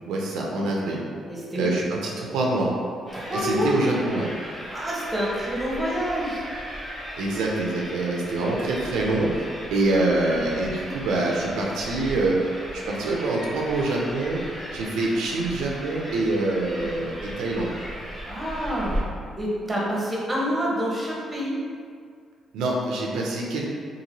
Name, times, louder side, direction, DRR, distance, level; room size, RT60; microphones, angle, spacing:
voice 1, 0.1-1.0 1.5-2.7 3.3-4.3 7.2-12.4 12.7-14.4 14.7-17.7 22.5-23.7, right 2 dB, 90° right, -2 dB, 0.4 m, -25 dB
voice 2, 1.3-1.7 3.1-3.8 4.7-6.4 16.7-17.0 18.3-19.0 19.3-21.6, equal, 20° right, -5 dB, 0.8 m, -27 dB
sound 1, 3.1-19.0, equal, 15° left, 1.3 m, -37 dB
2.9 x 2.5 x 2.7 m, 2.1 s
cardioid pair, 90°, 0 cm